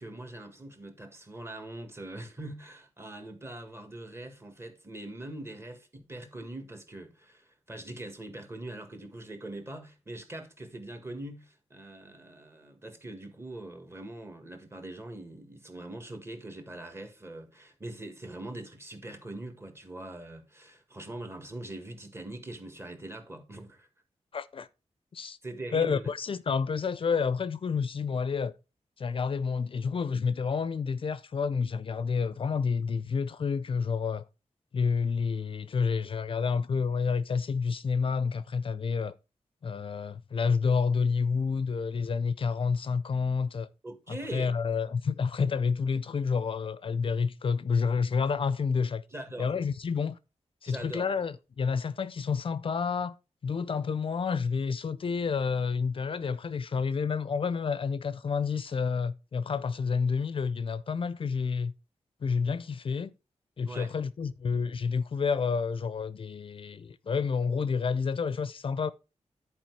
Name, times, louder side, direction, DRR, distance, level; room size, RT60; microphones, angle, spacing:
voice 1, 0.0-23.9 25.4-26.1 43.8-44.5 49.1-49.5 50.7-51.1 63.7-63.9, right 1 dB, 20° right, 1.6 m, -42 dB
voice 2, 24.3-24.7 25.1-25.4 25.7-28.5 29.0-34.2 34.7-39.1 39.6-43.7 44.1-49.0 49.4-50.2 50.6-53.1 53.4-61.7 62.2-63.1 63.6-68.9, left 5 dB, 50° left, 0.5 m, -29 dB
10.5 x 4.7 x 4.6 m
wide cardioid pair, 140°, 12 cm